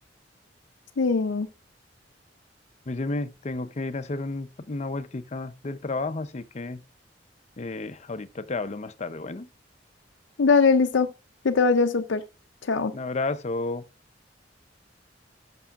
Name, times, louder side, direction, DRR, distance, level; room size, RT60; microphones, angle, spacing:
voice 1, 1.0-1.5 10.4-11.1 11.4-12.2 12.7-12.9, left 4 dB, 90° left, 0.5 m, -21 dB
voice 2, 2.9-6.8 7.6-9.5 12.9-13.8, left 3 dB, 40° left, 0.6 m, -32 dB
13.0 x 6.0 x 2.4 m
head